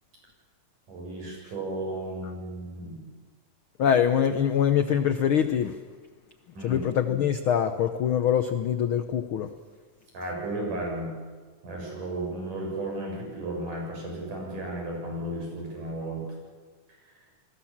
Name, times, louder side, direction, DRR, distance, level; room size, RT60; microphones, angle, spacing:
voice 1, 0.9-3.0 6.5-6.8 10.1-11.1 11.6-16.2, right 1 dB, 90° right, -1 dB, 8.6 m, -34 dB
voice 2, 3.8-5.8 6.6-9.5, left 8 dB, 90° left, 9 dB, 1.1 m, -24 dB
29.0 x 20.5 x 7.4 m, 1.5 s
omnidirectional pair, 3.6 m